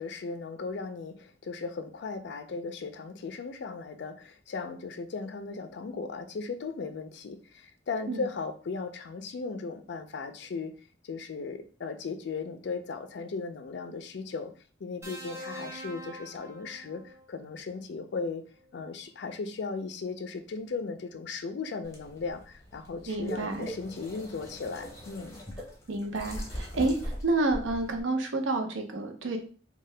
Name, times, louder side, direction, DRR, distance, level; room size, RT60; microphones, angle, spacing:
voice 1, 0.0-10.7 11.0-14.5 14.8-18.4 18.7-25.4, left 4 dB, 60° left, 9 dB, 0.4 m, -37 dB
sound 1, 15.0-17.3 18.6-18.8, equal, 15° right, 0.6 m, -44 dB
sound 2, 21.8-28.0, equal, 15° left, 0.8 m, -41 dB
voice 2, 23.1-23.7 25.9-29.4, right 2 dB, 80° right, 5 dB, 0.6 m, -29 dB
2.7 x 2.2 x 3.2 m, 0.40 s
head